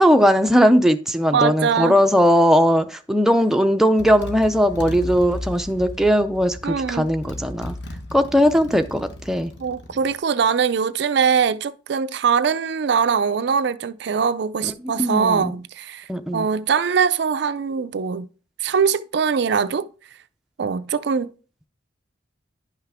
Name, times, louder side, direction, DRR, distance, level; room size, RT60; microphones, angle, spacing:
voice 1, 0.0-7.7 8.1-9.5 15.0-15.5 16.1-16.5, equal, ahead, 0.5 m, -18 dB
voice 2, 1.3-2.0 6.6-7.1 9.6-18.3 18.6-19.9 20.6-21.3, right 6 dB, 60° right, 0.4 m, -22 dB
Motorcycle, 3.4-3.6 4.0-10.1, left 1 dB, 60° left, 1.2 m, -36 dB
10.5 x 5.8 x 3.4 m
head